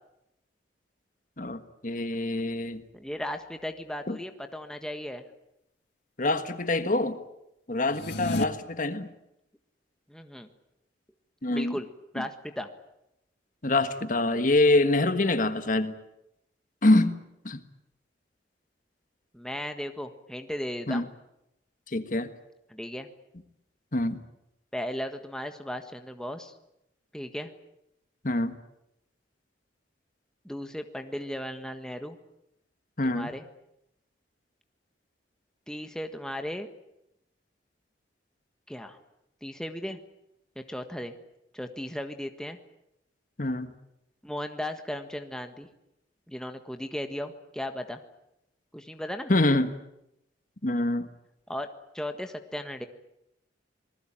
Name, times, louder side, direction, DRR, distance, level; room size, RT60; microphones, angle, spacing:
voice 1, 1.4-2.8 4.1-4.2 6.2-7.2 7.7-9.1 11.4-11.8 12.2-12.3 13.6-15.9 16.8-17.2 17.4-17.6 20.9-21.0 21.9-22.3 23.9-24.2 28.2-28.5 33.0-33.3 43.4-43.7 49.3-49.7 50.6-51.1, left 2 dB, 45° left, 10 dB, 1.6 m, -25 dB
voice 2, 2.9-5.2 8.2-8.4 10.1-10.5 11.5-11.9 12.1-12.7 19.3-21.0 22.7-23.1 24.7-26.5 27.1-27.5 30.4-32.2 33.0-33.4 35.7-36.7 38.7-39.0 39.4-40.0 40.5-41.1 41.5-42.6 44.2-45.7 46.3-48.0 48.7-49.3 51.5-51.7 51.9-52.9, equal, 5° left, 6 dB, 1.5 m, -36 dB
sound 1, 7.8-8.4, left 2 dB, 75° left, 2.0 m, -30 dB
27.5 x 20.0 x 8.9 m, 0.82 s
head